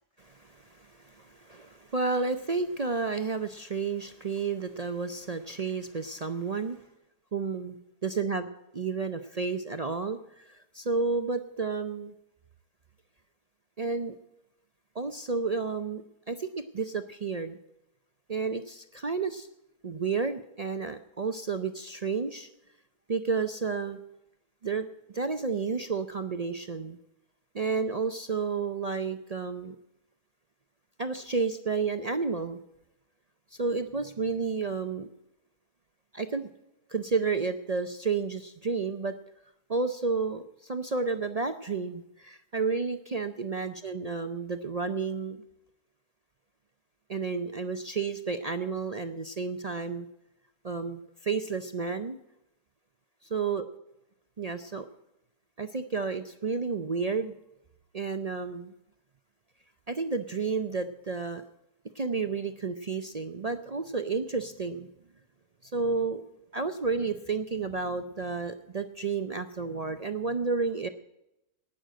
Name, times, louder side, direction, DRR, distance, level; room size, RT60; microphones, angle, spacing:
voice 1, 0.2-6.8 7.3-8.5 8.7-12.1 13.8-14.2 14.9-17.6 18.3-19.5 19.8-22.5 23.1-24.0 24.6-24.9 25.1-27.0 27.5-29.8 31.0-32.6 33.5-35.1 36.1-36.5 36.9-39.1 39.7-45.4 47.1-50.1 50.6-52.2 53.3-53.7 54.4-54.9 55.6-57.3 57.9-58.7 59.9-61.4 61.9-64.9 65.6-66.2 66.5-70.9, right 4 dB, 55° right, 8 dB, 0.4 m, -31 dB
18.5 x 6.6 x 7.6 m, 0.89 s
omnidirectional pair, 1.6 m